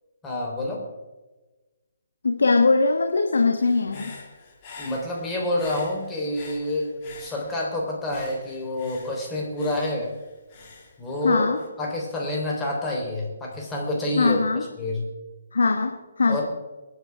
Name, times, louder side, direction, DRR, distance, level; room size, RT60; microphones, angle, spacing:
voice 1, 0.2-0.8 4.8-10.1 11.0-11.5 11.8-14.4 14.8-15.1 16.3-16.4, left 1 dB, 15° left, -2 dB, 3.6 m, -28 dB
voice 2, 2.2-4.1 11.2-11.6 14.2-14.7 15.5-16.4, left 3 dB, 70° left, 4 dB, 1.3 m, -21 dB
Human voice / Breathing, 3.6-7.7 8.1-11.7, left 3 dB, 35° left, 3.6 m, -45 dB
25.0 x 9.7 x 3.5 m, 1.2 s
figure-of-eight pair, 135°, 0 cm